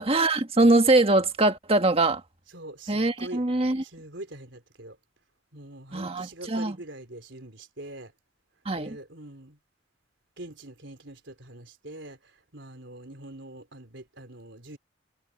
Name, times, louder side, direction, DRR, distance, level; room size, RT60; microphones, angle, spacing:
voice 1, 0.0-2.2 2.9-3.8 5.9-6.8 8.6-9.0, right 2 dB, 30° right, 1.6 m, -22 dB
voice 2, 2.5-5.0 5.5-8.1 8.7-9.6 10.4-14.8, right 1 dB, 65° right, 4.4 m, -43 dB
head